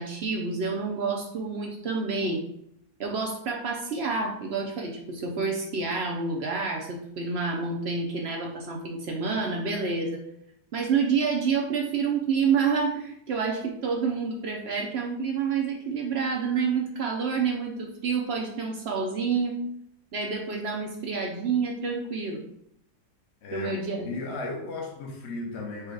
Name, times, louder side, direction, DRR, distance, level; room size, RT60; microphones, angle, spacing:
voice 1, 0.0-2.4 3.0-10.2 10.7-19.6 20.1-22.4 23.5-24.1, right 5 dB, 65° right, 0.6 m, -28 dB
voice 2, 23.4-23.7 24.1-25.9, left 3 dB, 55° left, 0.8 m, -35 dB
4.8 x 2.3 x 4.6 m
omnidirectional pair, 1.8 m